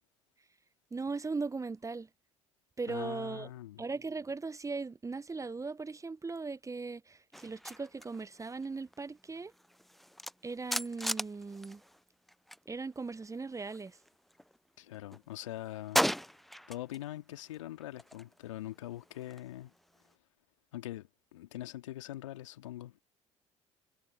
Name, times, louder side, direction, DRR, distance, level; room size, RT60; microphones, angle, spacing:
voice 1, 0.9-2.1 2.8-3.5 3.8-9.5 10.4-11.8 12.7-14.0, right 4 dB, 20° right, 0.9 m, -38 dB
voice 2, 2.8-3.8 14.8-16.0 16.7-19.7 20.7-23.0, left 14 dB, 80° left, 2.5 m, -43 dB
sound 1, 7.3-12.7 12.9-14.6 14.9-17.0 17.4-20.1, equal, ahead, 0.4 m, -39 dB
figure-of-eight pair, 55°, 16 cm